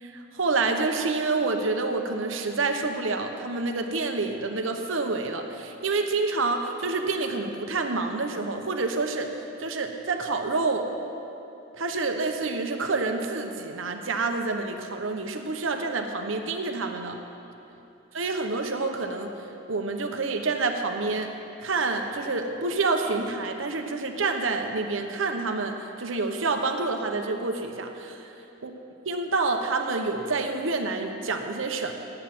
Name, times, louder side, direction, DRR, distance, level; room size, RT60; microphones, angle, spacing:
voice 1, 0.0-9.3 9.6-10.9 11.8-17.2 18.1-19.3 19.7-21.3 21.6-28.3 28.6-28.7 29.1-31.9, right 3 dB, 75° right, 4 dB, 0.9 m, -28 dB
11.5 x 8.8 x 6.0 m, 2.8 s
head